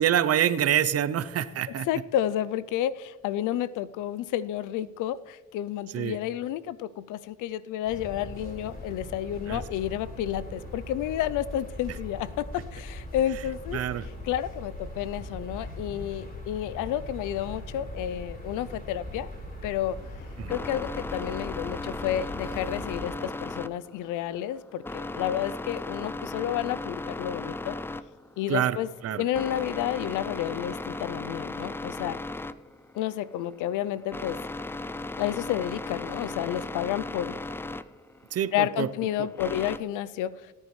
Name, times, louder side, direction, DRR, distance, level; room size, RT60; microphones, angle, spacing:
voice 1, 0.0-1.9 5.9-6.2 9.5-9.6 11.9-12.0 13.3-13.4 13.7-14.1 20.4-20.5 28.5-29.2 38.3-38.9 39.2-39.3, right 10 dB, 55° right, 15 dB, 0.6 m, -26 dB
voice 2, 1.9-13.8 14.3-19.3 19.6-20.0 20.5-27.7 28.4-28.9 29.2-32.2 33.0-34.4 35.2-37.4 38.5-40.3, left 12 dB, 90° left, 18 dB, 0.5 m, -30 dB
sound 1, 7.9-23.0, left 1 dB, 30° left, 4.3 m, -40 dB
sound 2, 19.9-39.8, left 2 dB, 10° left, 0.3 m, -37 dB
18.0 x 9.9 x 3.2 m, 1.3 s
cardioid pair, 90°, 30 cm